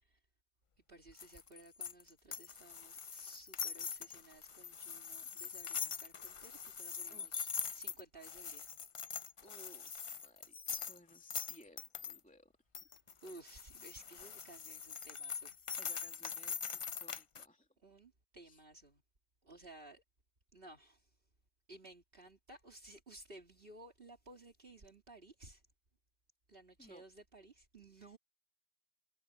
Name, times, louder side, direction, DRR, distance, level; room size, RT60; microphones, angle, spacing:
voice 1, 0.9-7.5 7.7-8.7 13.2-15.5 17.8-19.0 19.4-20.0 20.5-21.1 21.7-25.6 26.5-28.2, right 2 dB, 55° right, 3.2 m, -57 dB
sound 1, 1.2-12.2 12.7-17.4, left 6 dB, 40° left, 0.5 m, -43 dB
voice 2, 7.1-7.5 9.4-9.9 10.2-12.5 12.8-12.9 13.5-13.6 15.8-17.7 18.4-18.6 26.8-27.0 27.9-28.2, equal, 5° left, 2.8 m, -61 dB
omnidirectional pair, 1.1 m